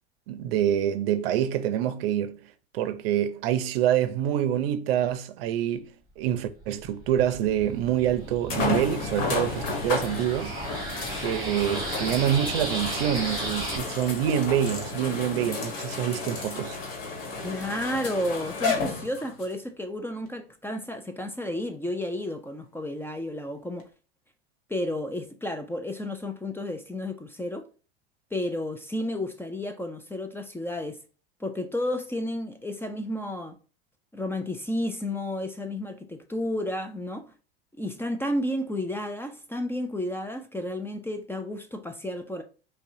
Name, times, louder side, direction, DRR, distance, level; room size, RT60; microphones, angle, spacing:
voice 1, 0.3-2.4 2.7-5.9 6.2-10.6 11.2-16.8, right 10 dB, 65° right, 0.6 m, -26 dB
sound 1, 6.6-13.8, right 2 dB, 15° right, 1.6 m, -35 dB
sound 2, 7.4-7.5 8.5-19.5 20.3-20.4 23.8-23.9, left 4 dB, 65° left, 1.2 m, -32 dB
voice 2, 17.4-23.9 24.7-27.7 28.3-31.0 31.4-33.6 34.1-37.3 37.8-42.4, left 1 dB, 5° left, 0.5 m, -32 dB
5.3 x 2.3 x 2.6 m
hypercardioid pair, 90°, 31 cm